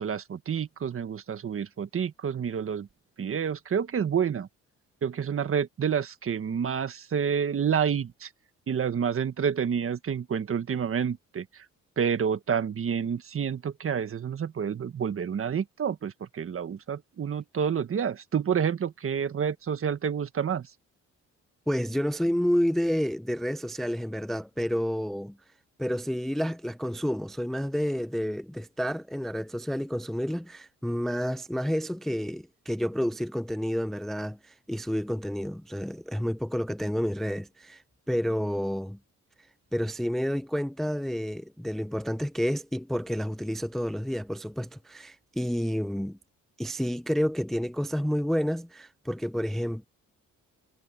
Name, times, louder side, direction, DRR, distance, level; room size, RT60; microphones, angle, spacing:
voice 1, 0.0-2.9 3.2-4.5 5.0-8.3 8.7-11.6 12.0-20.7, right 7 dB, 45° right, 1.6 m, -29 dB
voice 2, 21.7-25.4 25.8-39.0 39.7-46.2 46.6-49.9, equal, ahead, 0.5 m, -30 dB
cardioid pair, 90°, 30 cm